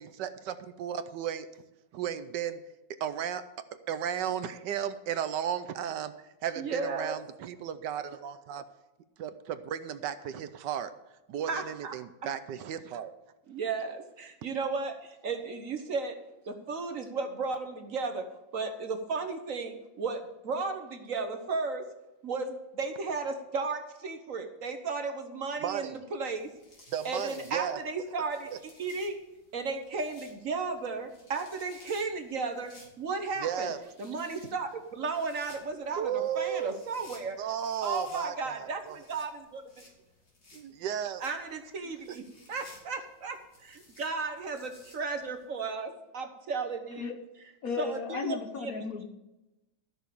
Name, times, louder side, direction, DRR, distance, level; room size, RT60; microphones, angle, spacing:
voice 1, 0.0-1.5 1.9-2.6 3.0-3.4 3.9-6.1 6.4-8.7 9.2-10.9 11.3-13.1 25.6-26.0 26.9-27.8 33.4-33.8 36.0-36.8 37.4-39.0 40.6-41.2 42.1-42.2, right 9 dB, 75° right, 12 dB, 1.3 m, -34 dB
voice 2, 6.6-7.2 11.5-11.9 13.5-16.2 16.4-18.3 18.5-21.8 22.2-26.5 27.0-29.2 29.5-32.7 33.0-33.7 34.0-37.4 37.8-39.6 41.2-42.2 42.5-47.1 47.8-48.7, right 4 dB, 50° right, 7 dB, 1.2 m, -34 dB
sound 1, 26.2-45.4, left 2 dB, 75° left, 3.6 m, -58 dB
voice 3, 47.6-49.1, left 5 dB, 55° left, 6 dB, 1.3 m, -35 dB
13.5 x 6.2 x 6.8 m, 0.99 s
omnidirectional pair, 2.0 m